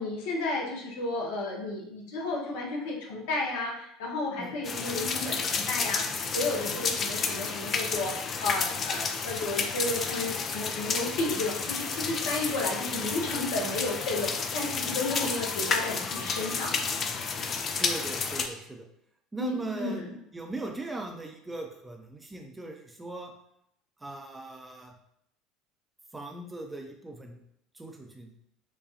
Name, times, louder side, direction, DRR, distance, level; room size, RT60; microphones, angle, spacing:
voice 1, 0.0-16.9 19.4-20.2, left 2 dB, 60° left, -1 dB, 0.8 m, -33 dB
sound 1, 4.6-18.5, left 5 dB, 35° left, 0.4 m, -31 dB
voice 2, 17.7-18.8 19.3-20.0 20.3-23.3 24.0-24.9 26.1-27.4 27.7-28.3, right 2 dB, 15° right, 2 dB, 0.6 m, -39 dB
5.0 x 2.3 x 2.8 m, 0.74 s
figure-of-eight pair, 65°, 0 cm